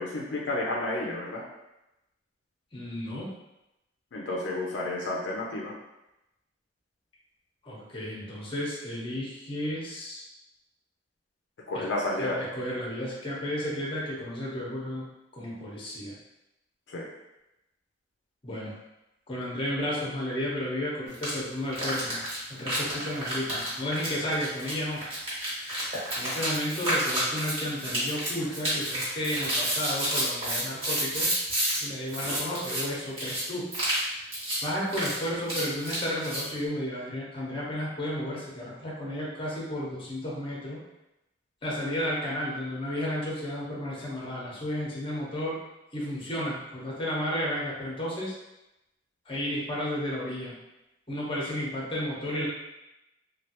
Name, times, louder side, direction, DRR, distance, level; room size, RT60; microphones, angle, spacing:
voice 1, 0.0-1.4 4.1-5.7 11.7-12.4 16.9-17.1, left 2 dB, 75° left, -3 dB, 0.5 m, -31 dB
voice 2, 2.7-3.3 7.6-10.2 11.7-11.8 12.2-15.1 15.3-16.1 18.4-18.7 19.3-22.2 22.5-25.0 26.2-31.4 31.8-33.7 34.6-40.8 41.6-45.6 45.9-48.4 49.3-50.6 51.1-52.5, left 1 dB, 30° left, -5 dB, 0.9 m, -32 dB
sound 1, 21.1-21.3 21.7-31.8 32.1-32.8 33.2-33.4 33.7-34.0 34.3-34.6 34.9-36.4, right 1 dB, 30° right, 1.3 m, -30 dB
3.2 x 2.3 x 2.9 m, 0.92 s
head